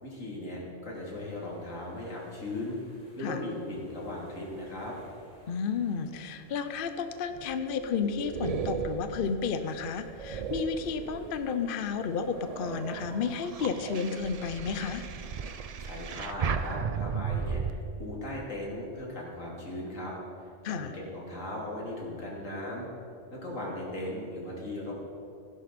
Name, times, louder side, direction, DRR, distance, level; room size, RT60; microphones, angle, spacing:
voice 1, 0.0-2.8 3.2-4.9 15.8-20.1 20.7-22.9 23.3-24.9, left 1 dB, 80° left, -4 dB, 3.3 m, -38 dB
sound 1, 1.0-14.4, equal, 30° left, 4.2 m, -57 dB
voice 2, 5.5-15.1 20.6-20.9, left 6 dB, 55° left, 9 dB, 0.7 m, -32 dB
sound 2, 7.3-11.6 12.1-17.7, right 6 dB, 60° right, 0.4 m, -35 dB
16.5 x 11.0 x 4.2 m, 2.5 s
omnidirectional pair, 1.3 m